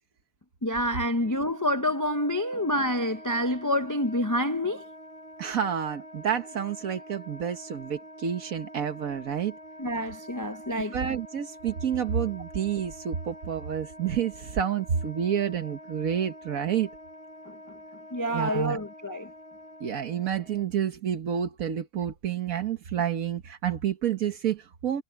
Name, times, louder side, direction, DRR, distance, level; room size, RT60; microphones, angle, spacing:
voice 1, 0.6-4.8 9.8-11.0 17.5-17.6 18.1-19.3, equal, 20° left, 0.6 m, -27 dB
Wind instrument woodwind instrument, 1.1-20.6, equal, 45° right, 2.6 m, -46 dB
voice 2, 5.4-9.5 10.9-16.9 18.3-18.8 19.8-25.0, right 8 dB, 80° right, 1.6 m, -29 dB
omnidirectional pair, 1.4 m